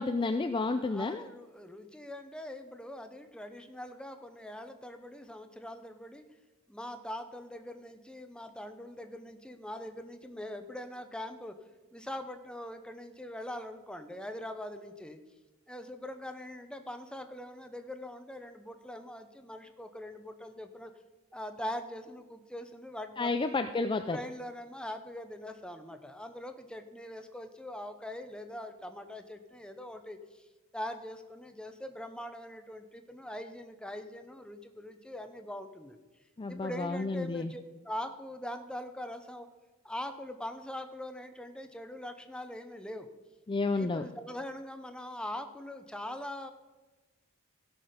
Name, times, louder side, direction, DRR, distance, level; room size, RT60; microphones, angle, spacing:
voice 1, 0.0-1.2 23.2-24.2 36.4-37.5 43.5-44.0, left 3 dB, 25° left, 7 dB, 0.4 m, -31 dB
voice 2, 0.8-6.2 6.7-11.5 11.9-15.2 15.7-20.9 21.3-23.6 24.1-30.5 30.7-36.0 36.5-39.5 39.8-43.1 43.7-46.5, left 1 dB, 5° left, 7 dB, 0.8 m, -42 dB
16.0 x 6.1 x 5.1 m, 1.2 s
head